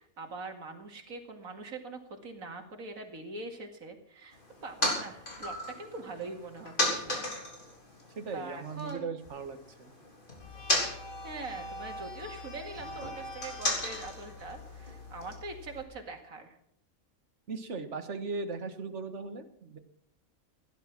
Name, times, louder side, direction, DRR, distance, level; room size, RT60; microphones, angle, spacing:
voice 1, 0.0-7.3 8.3-9.1 11.2-16.6, right 3 dB, 80° right, 5 dB, 2.6 m, -43 dB
sound 1, 4.3-8.9 9.2-15.3, left 1 dB, 35° left, 3.9 m, -36 dB
voice 2, 8.2-9.9 17.5-19.8, right 4 dB, 55° right, 9 dB, 1.7 m, -38 dB
sound 2, 10.4-15.8, left 1 dB, 65° left, 3.1 m, -45 dB
16.5 x 11.0 x 6.0 m, 0.73 s
omnidirectional pair, 1.4 m